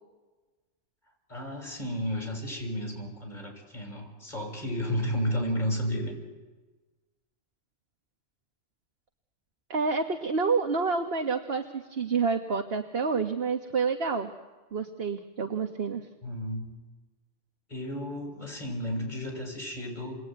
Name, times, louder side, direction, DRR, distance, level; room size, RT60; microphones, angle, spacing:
voice 1, 1.3-6.1 16.2-16.7 17.7-20.2, equal, 45° left, 2 dB, 6.9 m, -32 dB
voice 2, 9.7-14.3 14.7-16.0, right 4 dB, 60° right, 5 dB, 1.5 m, -28 dB
29.0 x 21.5 x 9.3 m, 1.3 s
omnidirectional pair, 1.1 m